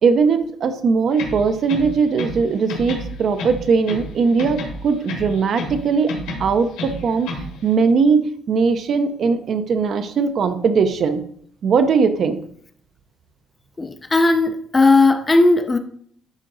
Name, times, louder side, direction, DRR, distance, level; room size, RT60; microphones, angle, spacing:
voice 1, 0.0-7.3 7.6-11.2 11.6-12.4, right 5 dB, 40° right, 9 dB, 0.7 m, -19 dB
sound 1, 1.1-2.4 2.7-4.1 4.4-5.8 6.1-7.5, left 2 dB, 90° left, 2.2 m, -30 dB
voice 2, 13.8-15.8, left 3 dB, 15° left, 8 dB, 0.4 m, -16 dB
11.5 x 3.8 x 3.9 m, 0.63 s
cardioid pair, 165°, 0 cm